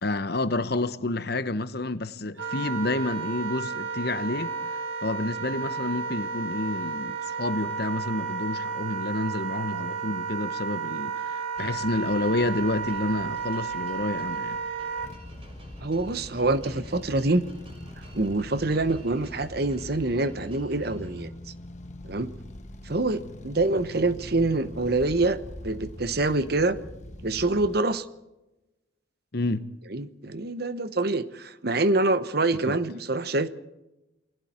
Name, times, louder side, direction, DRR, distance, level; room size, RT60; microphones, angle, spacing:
voice 1, 0.0-4.5 5.0-14.6 29.3-29.7 32.7-32.8, left 2 dB, 55° left, 1.0 m, -29 dB
Wind instrument woodwind instrument, 2.3-15.1, right 5 dB, 85° right, 2.9 m, -32 dB
sound 1, 11.5-21.2, right 1 dB, 30° right, 5.6 m, -51 dB
sound 2, 15.0-27.8, left 1 dB, 35° left, 1.3 m, -42 dB
voice 2, 15.8-17.4 18.1-21.3 22.0-22.3 22.8-26.8 27.2-28.1 29.9-33.5, right 2 dB, 55° right, 1.0 m, -25 dB
29.0 x 20.5 x 4.4 m
head